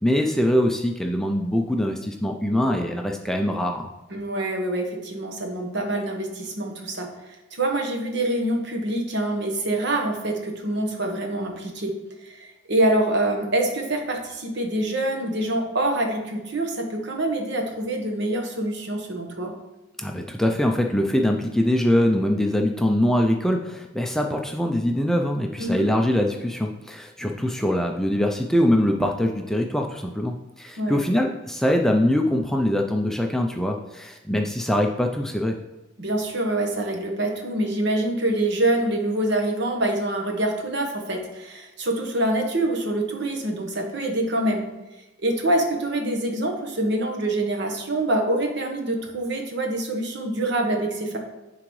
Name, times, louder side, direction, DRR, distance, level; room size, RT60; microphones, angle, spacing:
voice 1, 0.0-3.9 20.0-35.5, left 1 dB, ahead, 2 dB, 0.4 m, -23 dB
voice 2, 4.1-11.9 12.2-19.5 25.6-25.9 30.8-31.0 36.0-44.6 45.2-51.2, right 1 dB, 60° right, 2 dB, 1.1 m, -25 dB
9.6 x 3.8 x 3.1 m, 1.0 s
head